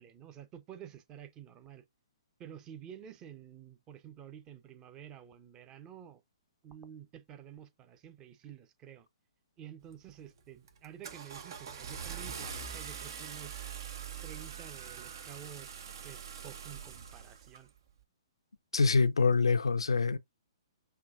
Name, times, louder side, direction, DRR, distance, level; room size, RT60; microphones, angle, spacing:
voice 1, 0.0-1.8 2.4-6.2 6.6-9.1 9.6-13.6 14.2-17.7, right 9 dB, 25° right, 0.8 m, -50 dB
Car / Engine starting, 9.9-10.2 10.7-17.6, right 7 dB, 55° right, 0.9 m, -43 dB
voice 2, 18.7-20.2, left 4 dB, 80° left, 0.5 m, -25 dB
6.0 x 2.8 x 2.5 m
figure-of-eight pair, 125°, 3 cm